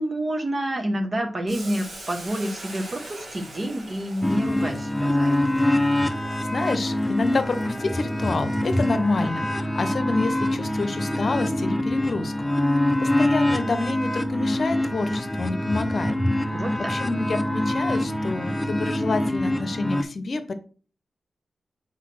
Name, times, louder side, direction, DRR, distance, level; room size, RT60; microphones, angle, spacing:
voice 1, 0.0-5.4 16.5-16.9, right 1 dB, 40° right, 6 dB, 1.3 m, -28 dB
Boiling, 1.5-9.3, right 1 dB, 60° right, 1.9 m, -43 dB
sound 1, 4.2-20.0, left 1 dB, 5° left, 0.7 m, -25 dB
voice 2, 6.5-12.3 13.0-16.2 16.9-20.5, left 3 dB, 60° left, 9 dB, 0.7 m, -28 dB
4.5 x 4.2 x 5.8 m, 0.40 s
cardioid pair, 65°, 0 cm